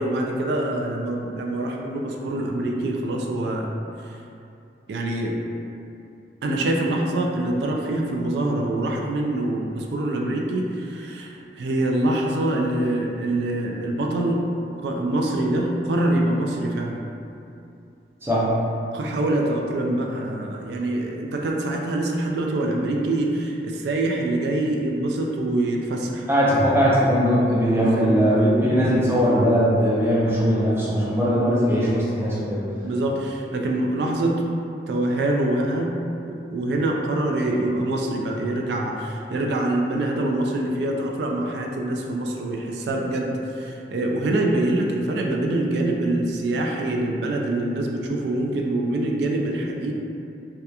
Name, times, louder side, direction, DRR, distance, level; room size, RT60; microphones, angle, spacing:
voice 1, 0.0-3.7 4.0-4.2 4.9-5.4 6.4-14.4 14.8-17.0 18.9-26.3 27.8-28.2 31.4-31.7 32.8-34.5 34.9-36.0 36.3-49.9, right 1 dB, 75° right, 0 dB, 0.3 m, -25 dB
voice 2, 26.3-32.6, equal, 15° right, -8 dB, 0.5 m, -20 dB
2.8 x 2.3 x 2.2 m, 2.6 s
head